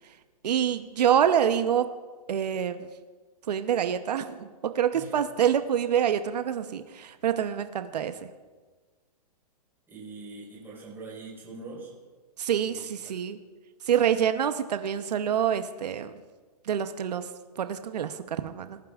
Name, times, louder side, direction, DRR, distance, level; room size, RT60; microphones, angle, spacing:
voice 1, 0.4-1.9 2.3-2.9 3.5-8.3 12.4-13.4 13.8-16.1 16.6-17.3 17.6-18.8, right 9 dB, 85° right, 9 dB, 0.8 m, -26 dB
voice 2, 9.9-11.9 12.7-13.2, right 3 dB, 10° right, -6 dB, 4.5 m, -43 dB
20.0 x 11.0 x 2.4 m, 1.4 s
hypercardioid pair, 155°, 20 cm